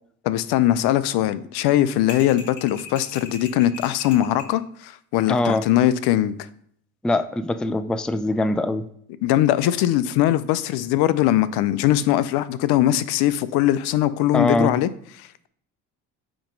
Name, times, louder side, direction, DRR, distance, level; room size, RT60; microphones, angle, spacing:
voice 1, 0.2-6.4 9.2-14.9, left 13 dB, 75° left, 0.6 m, -21 dB
sound 1, 2.1-4.6, left 4 dB, 50° left, 2.0 m, -39 dB
voice 2, 5.3-5.7 7.0-8.9 14.3-14.8, left 2 dB, ahead, 0.3 m, -22 dB
8.8 x 3.0 x 5.1 m
supercardioid pair, 80°, 40 cm